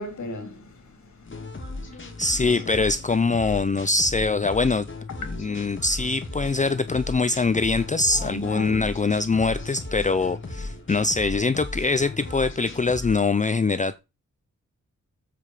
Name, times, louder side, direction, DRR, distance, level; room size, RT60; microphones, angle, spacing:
voice 1, 0.0-1.9 2.4-2.9 5.3-5.6 8.1-8.9 10.6-10.7, left 1 dB, 75° left, 3.7 m, -38 dB
sound 1, 1.2-13.2, left 2 dB, 40° left, 2.8 m, -36 dB
voice 2, 2.2-4.9 5.3-14.0, left 3 dB, 25° left, 0.5 m, -23 dB
8.5 x 7.8 x 4.9 m
wide cardioid pair, 170°, 29 cm